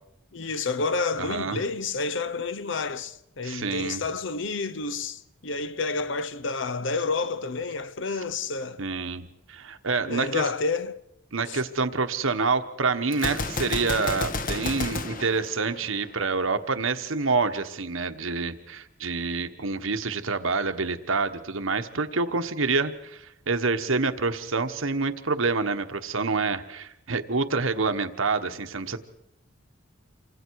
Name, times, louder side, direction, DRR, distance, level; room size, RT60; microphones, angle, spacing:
voice 1, 0.3-8.8 10.1-11.0 11.5-11.6, left 4 dB, 65° left, 0.9 m, -29 dB
voice 2, 1.2-1.6 3.4-4.0 8.8-10.5 11.3-29.0, right 4 dB, 75° right, 1.3 m, -27 dB
Gunshot gunfire, 13.1-16.2, left 3 dB, 40° left, 1.2 m, -31 dB
28.5 x 25.0 x 4.8 m
head